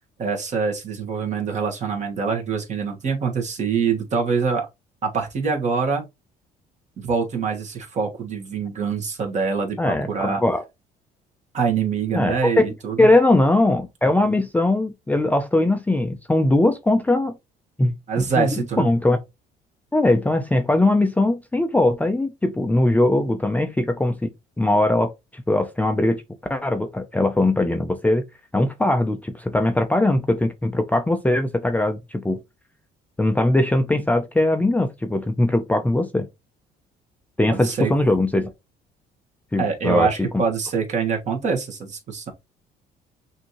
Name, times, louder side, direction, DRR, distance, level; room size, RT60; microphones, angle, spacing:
voice 1, 0.2-4.7 5.0-6.0 7.0-10.4 11.5-13.1 18.1-18.9 37.5-37.9 39.6-42.3, right 5 dB, 45° right, 1.6 m, -24 dB
voice 2, 9.8-10.6 12.1-12.6 13.0-17.3 17.8-19.2 19.9-24.3 24.6-26.2 26.5-28.2 28.5-32.4 33.2-36.3 37.4-38.5 39.5-40.3, left 2 dB, 10° left, 0.5 m, -20 dB
5.9 x 2.8 x 3.0 m
cardioid pair, 110°, 17 cm